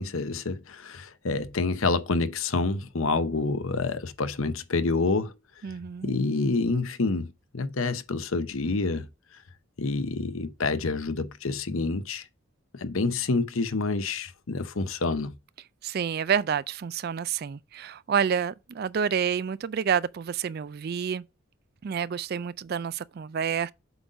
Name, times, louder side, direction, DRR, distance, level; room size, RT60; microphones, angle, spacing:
voice 1, 0.0-5.3 6.0-9.1 9.8-12.3 12.7-15.4, left 3 dB, 70° left, 0.8 m, -28 dB
voice 2, 5.6-6.2 15.8-21.2 21.8-23.7, right 7 dB, 45° right, 0.3 m, -28 dB
7.9 x 4.0 x 5.0 m
head